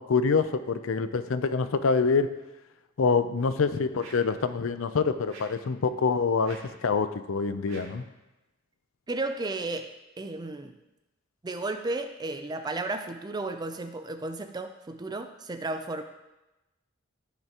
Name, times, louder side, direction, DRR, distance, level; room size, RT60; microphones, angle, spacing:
voice 1, 0.0-2.3 3.0-8.0, left 5 dB, 75° left, 11 dB, 0.5 m, -26 dB
sound 1, 4.0-4.4 5.3-5.7 6.4-6.8 7.7-8.1, right 2 dB, 75° right, 2.2 m, -48 dB
voice 2, 9.1-9.9 10.2-10.8 11.4-16.0, right 2 dB, 20° right, 6 dB, 0.4 m, -33 dB
14.0 x 5.7 x 2.9 m, 1.0 s
head